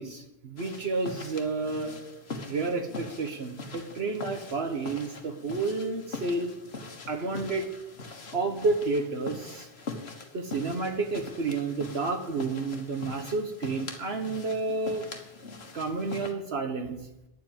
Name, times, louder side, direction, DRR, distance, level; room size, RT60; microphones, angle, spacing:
voice 1, 0.0-2.0 2.5-6.5 7.1-7.7 8.3-9.7 10.3-15.0 15.7-17.0, right 3 dB, 60° right, 5 dB, 1.3 m, -30 dB
sound 1, 0.6-16.3, left 3 dB, 60° left, 1.7 m, -42 dB
10.5 x 7.6 x 9.0 m, 0.88 s
omnidirectional pair, 1.2 m